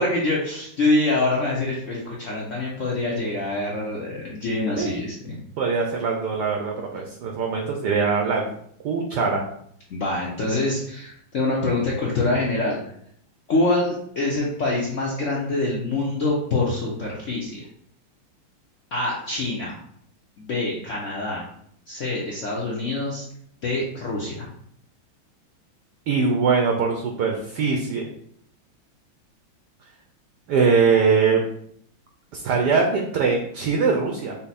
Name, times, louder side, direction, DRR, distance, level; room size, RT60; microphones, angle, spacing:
voice 1, 0.0-5.4 9.9-12.8 13.5-17.6 18.9-19.8 20.4-21.4 21.9-23.2 23.6-24.5, left 2 dB, 75° left, -4 dB, 0.6 m, -25 dB
voice 2, 5.6-8.4 8.8-9.4 26.1-28.0 30.5-31.4 32.3-34.4, right 5 dB, 70° right, 2 dB, 1.0 m, -22 dB
5.6 x 2.1 x 4.1 m, 0.66 s
omnidirectional pair, 2.3 m